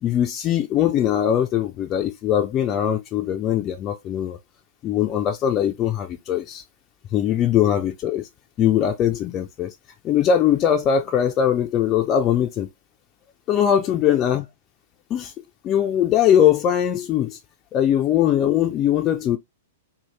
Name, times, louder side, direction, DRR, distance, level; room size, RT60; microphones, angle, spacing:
voice 1, 0.0-4.4 4.8-6.6 7.1-8.3 8.6-9.7 10.0-12.7 13.5-14.5 15.1-15.3 15.6-17.4 17.7-19.4, left 9 dB, 30° left, 0.3 m, -21 dB
2.6 x 2.2 x 3.1 m
figure-of-eight pair, 105°, 0 cm